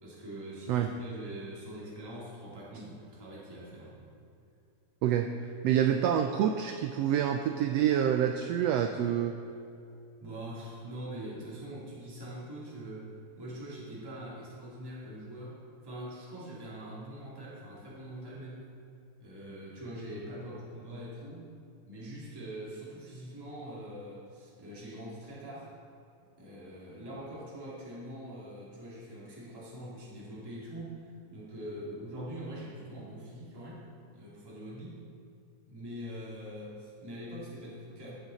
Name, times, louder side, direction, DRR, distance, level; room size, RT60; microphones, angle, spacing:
voice 1, 0.0-4.1 10.2-13.1 13.4-18.7 19.2-21.5 21.9-25.7 26.4-33.8 34.1-35.0 35.7-38.1, right 1 dB, 10° right, -7 dB, 2.2 m, -43 dB
voice 2, 5.6-9.4, right 9 dB, 85° right, 6 dB, 1.4 m, -27 dB
15.0 x 9.0 x 4.1 m, 2.5 s
omnidirectional pair, 3.4 m